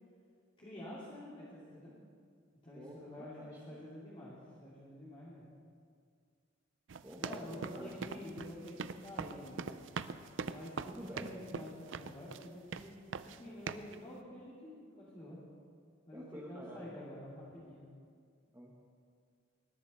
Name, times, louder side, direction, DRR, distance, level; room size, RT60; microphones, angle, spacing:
voice 1, 0.6-1.9 2.6-5.5 7.2-9.8 10.4-11.2 11.5-13.0 13.2-15.4 16.0-17.8, left 1 dB, 30° left, -9 dB, 2.7 m, -48 dB
voice 2, 2.7-3.8 7.0-8.2 10.9-11.4 16.1-16.8 18.5-18.8, equal, 15° right, -4 dB, 1.6 m, -49 dB
sound 1, 6.9-12.5 12.7-13.4 13.7-14.0, right 5 dB, 75° right, 0.5 m, -42 dB
20.0 x 11.5 x 4.3 m, 2.2 s
head